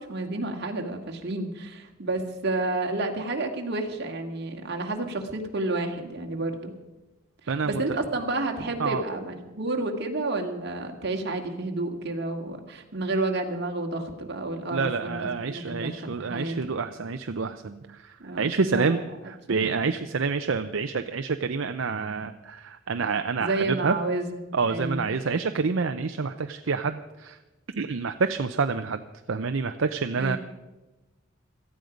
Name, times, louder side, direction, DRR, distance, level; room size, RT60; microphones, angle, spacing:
voice 1, 0.0-6.7 7.4-16.6 18.2-19.0 19.6-19.7 23.4-25.1 30.2-30.4, right 2 dB, 55° right, 3 dB, 2.0 m, -30 dB
voice 2, 7.5-7.8 8.8-9.0 14.7-19.0 19.3-23.9 24.5-27.4 27.8-30.4, right 4 dB, 75° right, 8 dB, 0.6 m, -28 dB
17.5 x 14.0 x 5.2 m, 1.1 s
head